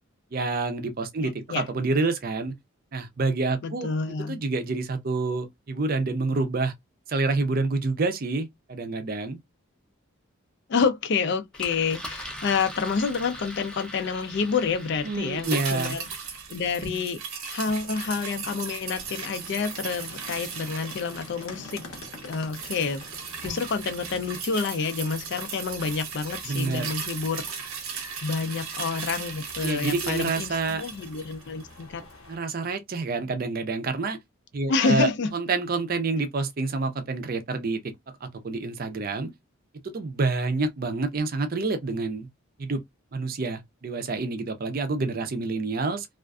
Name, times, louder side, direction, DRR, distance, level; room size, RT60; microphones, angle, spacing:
voice 1, 0.3-2.5 2.9-3.9 4.3-6.7 7.1-9.4 15.0-16.0 26.4-26.9 29.6-30.8 32.3-34.2 34.5-37.9 38.2-39.3 39.8-42.3 42.6-42.8 43.1-46.1, right 3 dB, 45° right, 0.5 m, -28 dB
voice 2, 1.2-1.7 3.6-4.4 10.7-16.1 16.5-21.8 22.2-23.0 23.4-27.5 28.2-32.0 34.7-35.3, left 5 dB, 55° left, 0.4 m, -28 dB
Engine, 11.5-16.8, equal, 5° left, 0.5 m, -41 dB
sound 1, 15.4-31.9 32.2-32.3, right 6 dB, 85° right, 0.8 m, -37 dB
sound 2, 17.6-32.4, left 2 dB, 75° left, 0.7 m, -48 dB
2.4 x 2.4 x 2.2 m
head